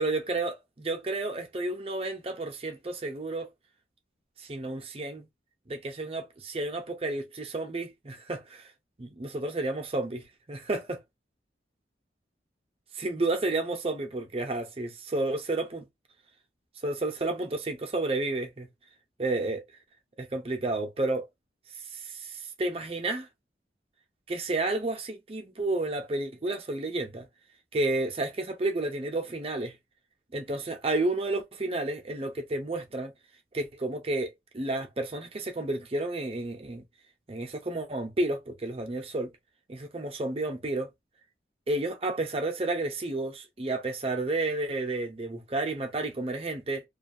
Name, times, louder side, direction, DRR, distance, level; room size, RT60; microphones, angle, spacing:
voice 1, 0.0-3.5 4.4-5.3 5.7-8.7 9.0-11.0 12.9-15.8 16.8-18.7 19.2-19.6 20.2-21.2 21.9-23.3 24.3-27.3 27.7-29.7 30.3-33.1 33.5-36.8 37.3-39.3 39.7-40.9 41.7-46.8, right 2 dB, 35° right, 0.6 m, -31 dB
2.6 x 2.3 x 2.6 m
head